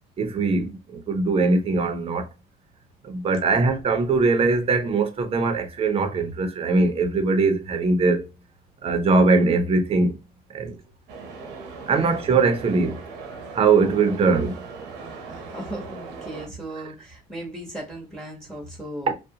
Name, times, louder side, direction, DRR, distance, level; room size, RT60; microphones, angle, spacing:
voice 1, 0.2-2.3 3.0-8.3 8.8-10.2 10.5-10.8 11.9-13.0 13.5-14.6 19.1-19.2, right 3 dB, 35° right, 0.5 m, -21 dB
sound 1, 11.1-16.5, right 4 dB, 85° right, 0.7 m, -39 dB
voice 2, 15.3-19.1, right 1 dB, 5° left, 0.9 m, -37 dB
2.4 x 2.0 x 2.7 m
cardioid pair, 110°, 17 cm